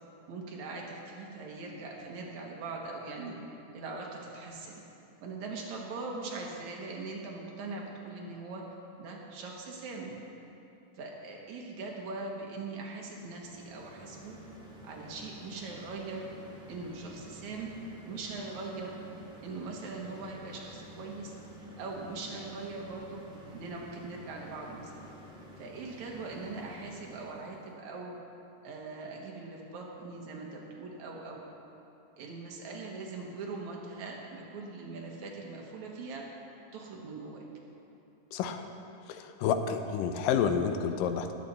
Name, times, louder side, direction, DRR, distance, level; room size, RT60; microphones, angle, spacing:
voice 1, 0.3-3.4 3.7-4.7 5.2-8.6 9.0-10.1 11.0-14.4 14.8-16.3 16.7-17.7 18.1-19.0 19.4-21.3 21.8-23.2 23.5-25.0 25.6-28.2 28.6-31.4 32.2-36.3 36.7-37.4, right 3 dB, 65° right, -1 dB, 2.5 m, -41 dB
sound 1, 13.1-27.6, equal, 5° right, 0.7 m, -51 dB
voice 2, 38.3-38.7 39.1-41.3, left 7 dB, 90° left, 8 dB, 2.4 m, -29 dB
19.5 x 8.3 x 4.2 m, 2.8 s
omnidirectional pair, 3.8 m